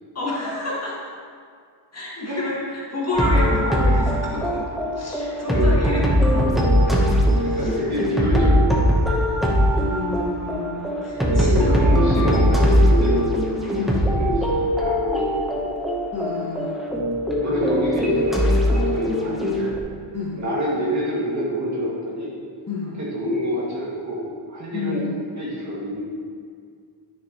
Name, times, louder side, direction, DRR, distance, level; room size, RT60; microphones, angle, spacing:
voice 1, 0.2-0.9 1.9-4.6 5.0-7.0 7.4-7.7 9.8-11.8 12.2-12.4 13.8-14.0 16.1-16.8 20.1-20.4 22.7-23.0 24.7-25.2, left 2 dB, 30° left, -5 dB, 1.7 m, -29 dB
sound 1, 3.1-19.8, equal, ahead, 0.9 m, -20 dB
voice 2, 5.5-6.0 7.4-9.4 11.3-13.3 13.6-15.8 17.4-19.8 20.4-22.4 23.0-25.0 25.3-26.0, equal, 35° right, -6 dB, 2.0 m, -27 dB
11.5 x 6.4 x 3.0 m, 2.1 s
wide cardioid pair, 145°, 49 cm